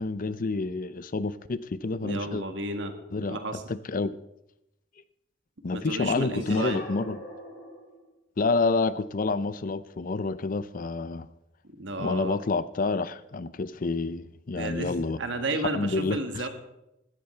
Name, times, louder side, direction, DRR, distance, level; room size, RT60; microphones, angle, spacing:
voice 1, 0.0-2.4 3.1-3.4 3.7-4.1 5.6-7.2 8.4-11.3 12.0-15.2 15.7-16.2, left 3 dB, 45° left, 16 dB, 0.5 m, -28 dB
voice 2, 2.0-2.9 3.2-3.6 5.7-6.8 11.8-12.4 14.5-16.5, right 2 dB, 65° right, 7 dB, 1.7 m, -32 dB
sound 1, 6.3-8.2, left 1 dB, 75° left, 5.9 m, -43 dB
16.5 x 13.0 x 4.4 m, 0.87 s
head